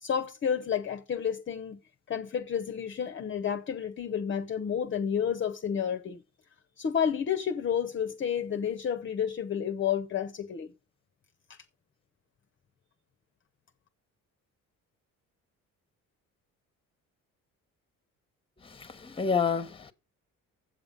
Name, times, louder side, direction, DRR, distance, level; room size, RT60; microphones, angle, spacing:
voice 1, 0.0-1.8 2.1-6.2 6.8-10.7, left 8 dB, 40° left, 0.7 m, -30 dB
voice 2, 18.6-19.9, left 5 dB, 15° left, 1.0 m, -29 dB
7.9 x 7.9 x 5.3 m
cardioid pair, 120°, 32 cm